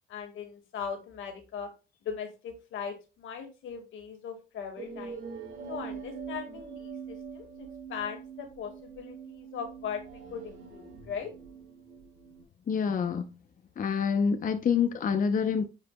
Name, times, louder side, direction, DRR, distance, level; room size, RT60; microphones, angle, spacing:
voice 1, 0.1-1.7 2.0-5.2 5.7-11.3, left 7 dB, 80° left, 1.8 m, -39 dB
sound 1, 4.8-12.4, right 6 dB, 75° right, 2.1 m, -43 dB
voice 2, 12.7-13.3 13.8-15.7, left 6 dB, 45° left, 0.7 m, -27 dB
9.4 x 5.0 x 2.2 m
cardioid pair, 90°, 20 cm